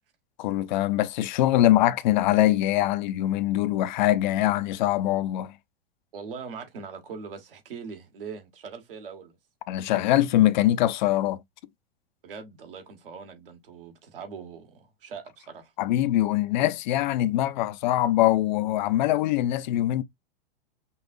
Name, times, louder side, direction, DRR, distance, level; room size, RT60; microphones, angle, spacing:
voice 1, 0.4-5.5 9.7-11.4 15.8-20.0, left 14 dB, 50° left, 0.5 m, -23 dB
voice 2, 6.1-9.4 12.2-15.7, right 5 dB, 70° right, 1.4 m, -41 dB
5.5 x 2.5 x 2.6 m
figure-of-eight pair, 100°, 29 cm